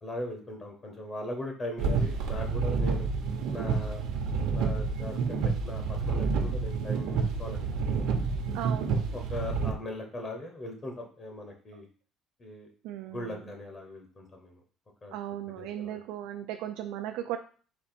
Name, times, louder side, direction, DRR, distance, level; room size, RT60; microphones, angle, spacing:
voice 1, 0.0-3.1 3.5-4.0 4.4-7.7 8.0-8.1 9.1-11.9 12.4-12.7 13.1-14.6 15.0-15.1 15.5-16.0, left 1 dB, 25° left, 3 dB, 0.8 m, -39 dB
sound 1, 1.8-9.7, right 5 dB, 70° right, 0.9 m, -29 dB
voice 2, 8.5-9.0 12.8-13.4 15.1-17.4, right 12 dB, 90° right, 5 dB, 0.4 m, -36 dB
4.2 x 2.9 x 4.4 m, 0.41 s
cardioid pair, 150°, 0 cm